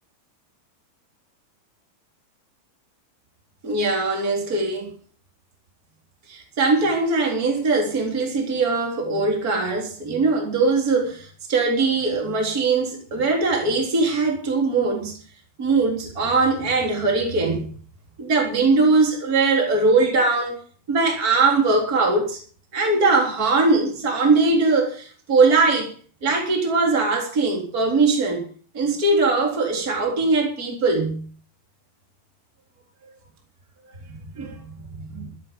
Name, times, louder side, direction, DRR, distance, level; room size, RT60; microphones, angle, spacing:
voice 1, 3.6-4.9 6.3-15.1 15.6-17.7 18.2-20.6 20.9-22.4 22.7-25.9 26.2-28.4 28.7-31.2 34.3-34.7, right 3 dB, 25° right, 4.0 m, -21 dB
14.0 x 13.0 x 5.4 m
omnidirectional pair, 3.8 m